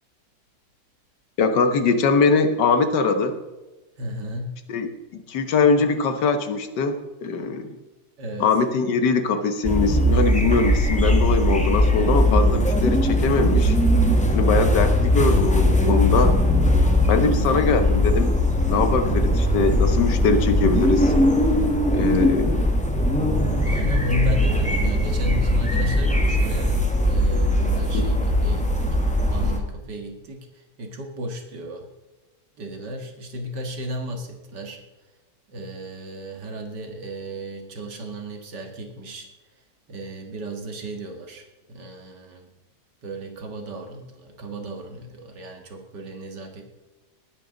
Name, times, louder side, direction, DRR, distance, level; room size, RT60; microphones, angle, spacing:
voice 1, 1.4-3.4 4.7-7.8 8.4-13.8 14.3-16.3 17.1-18.4 18.7-21.1 21.9-22.7 27.9-28.1, left 4 dB, 85° left, 9 dB, 1.8 m, -22 dB
voice 2, 4.0-4.6 8.2-8.5 17.2-17.8 23.6-31.9 32.6-34.8 35.5-39.3 39.9-42.5 43.0-46.7, equal, 80° right, 4 dB, 2.5 m, -34 dB
sound 1, 9.7-29.6, left 1 dB, 5° left, 1.4 m, -20 dB
19.0 x 10.5 x 3.9 m, 1.2 s
omnidirectional pair, 1.8 m